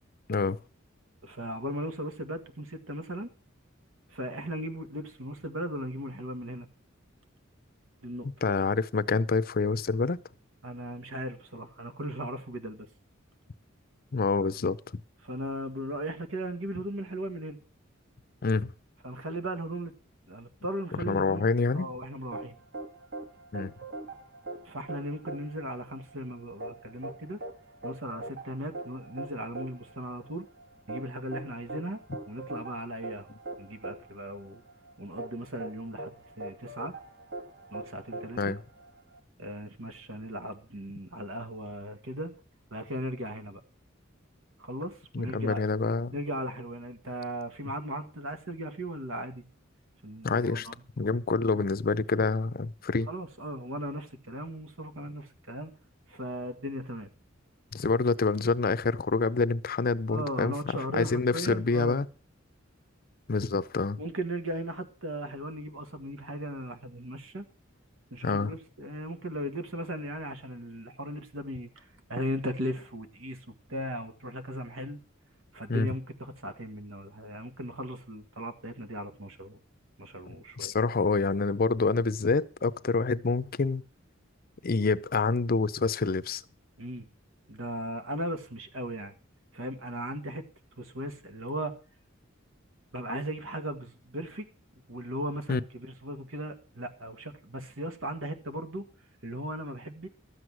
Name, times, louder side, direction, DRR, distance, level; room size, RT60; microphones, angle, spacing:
voice 1, 0.3-0.6 8.4-10.2 14.1-14.8 18.4-18.7 20.9-21.9 23.5-23.7 38.4-38.6 45.1-46.2 50.2-50.7 51.0-53.1 57.7-60.5 60.9-62.1 63.3-64.0 68.2-68.5 75.7-75.9 80.6-83.8 84.6-86.4 95.5-95.6, left 4 dB, 45° left, 0.6 m, -27 dB
voice 2, 1.2-3.3 4.1-6.7 8.0-8.3 10.6-12.9 14.2-14.4 15.2-17.6 19.0-19.9 20.3-22.6 24.7-27.4 27.8-30.5 30.9-33.3 33.6-34.6 35.0-36.9 37.7-38.5 39.4-42.3 42.7-43.6 44.6-45.6 46.1-49.4 50.0-50.8 51.5-51.6 53.1-55.7 56.1-57.1 60.1-62.1 64.0-67.5 68.1-75.0 75.5-79.6 80.0-80.7 86.8-87.1 87.5-89.2 89.5-90.4 90.8-91.8 92.9-94.5 94.9-98.9 99.2-100.1, right 1 dB, 85° right, 1.8 m, -37 dB
sound 1, 22.3-39.2, right 2 dB, 50° right, 1.9 m, -42 dB
13.0 x 8.0 x 6.2 m
head